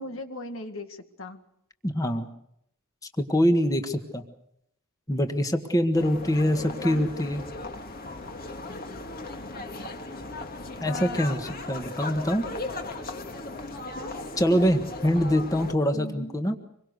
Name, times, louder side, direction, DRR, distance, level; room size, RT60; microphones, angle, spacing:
voice 1, 0.0-1.4 6.6-7.1 10.8-11.5 15.9-16.3, left 2 dB, 65° left, 7 dB, 2.0 m, -38 dB
voice 2, 1.8-2.3 3.2-4.2 5.1-7.4 10.8-12.4 14.4-16.6, equal, 15° left, 6 dB, 1.6 m, -24 dB
sound 1, 5.9-15.7, left 2 dB, 45° left, 2.2 m, -37 dB
26.0 x 22.5 x 6.6 m, 0.75 s
head